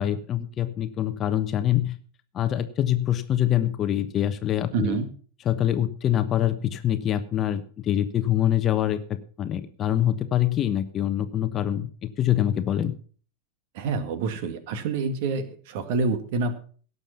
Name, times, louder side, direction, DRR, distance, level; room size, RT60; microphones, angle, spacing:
voice 1, 0.0-1.9 2.3-5.0 5.4-12.9, left 11 dB, 30° left, 11 dB, 1.0 m, -25 dB
voice 2, 4.7-5.1 13.8-16.6, right 4 dB, 50° right, 11 dB, 1.8 m, -27 dB
17.5 x 7.0 x 5.8 m, 0.44 s
figure-of-eight pair, 90°, 0 cm